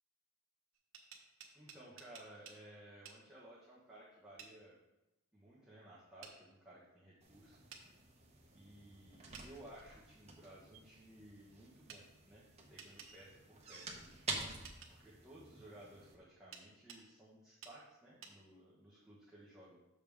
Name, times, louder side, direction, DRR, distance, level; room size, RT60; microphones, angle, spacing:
sound 1, 0.7-2.6 3.1-3.2 4.4-4.5 6.2-6.4 7.7-7.9 9.3-9.5 11.9-12.0 12.8-13.1 14.6-14.9 16.5-17.0 17.6-17.8 18.2-18.4, right 6 dB, 65° right, 1.1 m, -53 dB
voice 1, 1.5-4.8 5.3-7.6 8.5-14.1 14.9-19.8, right 1 dB, 5° right, -9 dB, 1.4 m, -57 dB
sound 2, 7.2-16.2, right 3 dB, 30° right, 1.1 m, -49 dB
7.1 x 6.8 x 3.6 m, 0.96 s
head